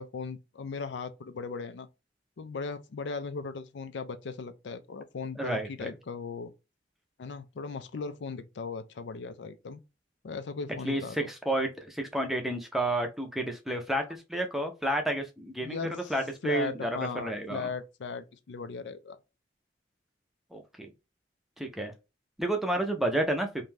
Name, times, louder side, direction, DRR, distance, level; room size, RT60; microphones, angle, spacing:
voice 1, 0.0-1.9 2.4-6.5 7.2-9.8 10.2-11.3 15.6-16.1 16.4-19.2, left 4 dB, 85° left, 0.4 m, -37 dB
voice 2, 5.4-5.9 10.8-15.8 16.1-17.7 20.5-20.9 21.6-21.9 22.4-23.5, right 1 dB, ahead, 0.4 m, -30 dB
2.6 x 2.2 x 3.1 m
head